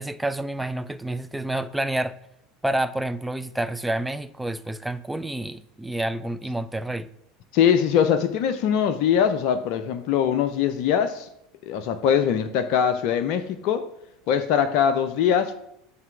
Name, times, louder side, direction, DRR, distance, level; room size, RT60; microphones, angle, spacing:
voice 1, 0.0-2.2 2.6-7.1, right 1 dB, 5° right, 0.4 m, -28 dB
voice 2, 7.5-11.3 11.7-13.9 14.3-15.6, left 8 dB, 55° left, 0.4 m, -22 dB
7.4 x 3.3 x 5.8 m
figure-of-eight pair, 75°, 0 cm